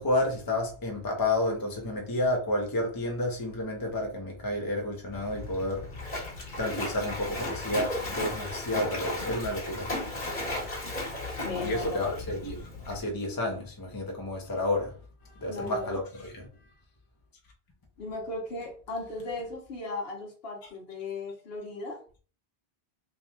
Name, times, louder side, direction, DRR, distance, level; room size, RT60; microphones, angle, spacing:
voice 1, 0.0-10.0 11.6-15.0 15.2-16.7, left 1 dB, 20° left, 0.8 m, -31 dB
Splash splatter, 5.1-13.0, left 2 dB, 50° left, 1.7 m, -35 dB
voice 2, 11.4-12.1 15.5-16.0 18.0-22.0, left 3 dB, 70° left, 1.3 m, -36 dB
3.5 x 2.3 x 4.2 m
omnidirectional pair, 1.1 m